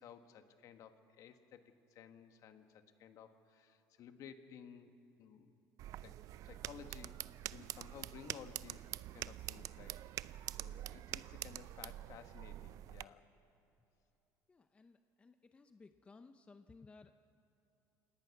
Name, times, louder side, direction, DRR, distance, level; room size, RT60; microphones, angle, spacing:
voice 1, 0.0-4.9 5.2-5.5 6.0-6.2 6.4-10.0 10.6-13.2, left 8 dB, 55° left, 8 dB, 1.5 m, -56 dB
sound 1, 5.8-13.0, right 14 dB, 55° right, 0.4 m, -46 dB
voice 2, 14.5-17.1, left 4 dB, 15° left, 8 dB, 0.6 m, -59 dB
27.5 x 19.0 x 6.0 m, 2.9 s
cardioid pair, 135°, 7 cm